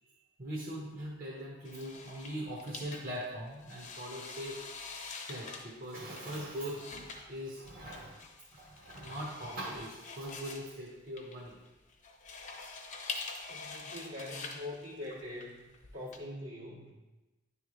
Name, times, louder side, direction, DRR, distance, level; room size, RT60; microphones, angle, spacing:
voice 1, 0.0-4.6 5.3-8.2 8.5-11.6, equal, 50° right, -7 dB, 1.3 m, -41 dB
sound 1, 1.6-16.2, left 4 dB, 40° left, 0.7 m, -46 dB
voice 2, 13.5-16.9, left 1 dB, 75° right, -5 dB, 2.0 m, -43 dB
10.0 x 3.4 x 3.2 m, 1.1 s
head